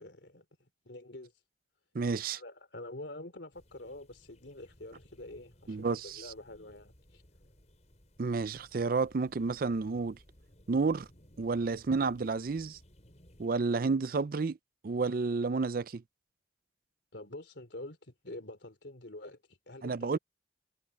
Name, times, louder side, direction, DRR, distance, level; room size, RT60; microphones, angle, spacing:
voice 1, 0.0-1.3 2.3-7.2 17.1-20.2, left 1 dB, 70° left, 3.2 m, -47 dB
voice 2, 1.9-2.4 5.7-6.3 8.2-10.2 10.7-11.1 11.4-12.8 13.4-14.6 14.8-16.0 19.8-20.2, right 4 dB, 50° right, 0.4 m, -30 dB
sound 1, 3.5-13.5, equal, 40° left, 5.7 m, -61 dB
head